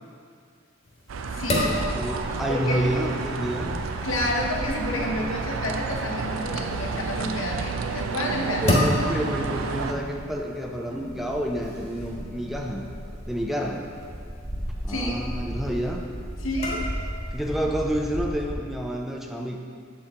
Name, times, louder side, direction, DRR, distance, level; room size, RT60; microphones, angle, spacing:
sound 1, 0.8-17.6, left 1 dB, 35° left, 1.1 m, -34 dB
sound 2, 1.1-9.9, right 4 dB, 90° right, 0.4 m, -31 dB
voice 1, 1.3-1.8 2.5-2.9 4.0-8.8 14.9-15.3 16.4-16.8, left 1 dB, 85° left, 0 dB, 0.9 m, -30 dB
voice 2, 1.9-3.7 8.6-12.8 13.3-13.9 14.8-16.0 17.3-19.6, equal, ahead, 0 dB, 0.4 m, -29 dB
Bird / Wind, 3.2-18.5, equal, 35° right, 1.2 m, -38 dB
7.6 x 4.4 x 3.6 m, 2.2 s
head